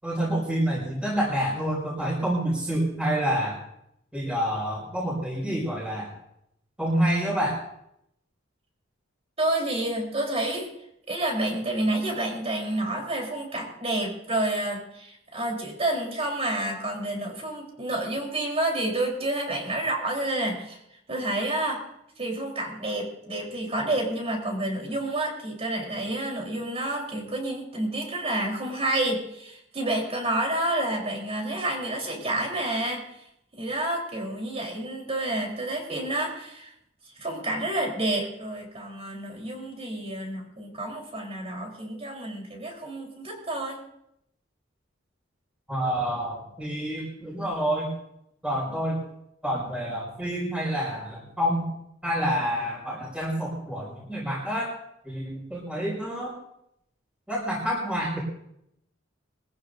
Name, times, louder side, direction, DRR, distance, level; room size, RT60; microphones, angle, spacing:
voice 1, 0.0-3.6 4.1-6.1 6.8-7.6 45.7-47.9 48.4-49.0 49.4-51.7 52.0-54.7 55.0-56.3 57.3-58.2, equal, 5° right, -6 dB, 5.7 m, -28 dB
voice 2, 9.4-10.7 11.1-20.8 21.1-21.8 22.2-33.2 33.5-36.7 37.2-43.8, right 1 dB, 30° right, 0 dB, 4.0 m, -29 dB
23.0 x 15.0 x 2.7 m, 0.78 s
head